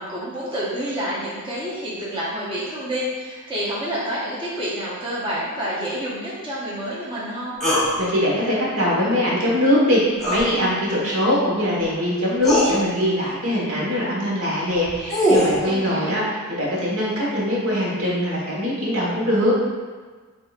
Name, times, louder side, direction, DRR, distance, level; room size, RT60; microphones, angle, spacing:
voice 1, 0.0-7.6 15.4-16.2, equal, 25° right, -8 dB, 1.0 m, -28 dB
sound 1, 7.6-7.9 10.2-10.5 11.8-11.9 12.4-12.7 14.7-15.6, equal, ahead, 1.1 m, -20 dB
voice 2, 8.0-19.5, equal, 80° right, -5 dB, 1.3 m, -22 dB
8.1 x 2.7 x 2.4 m, 1.4 s
head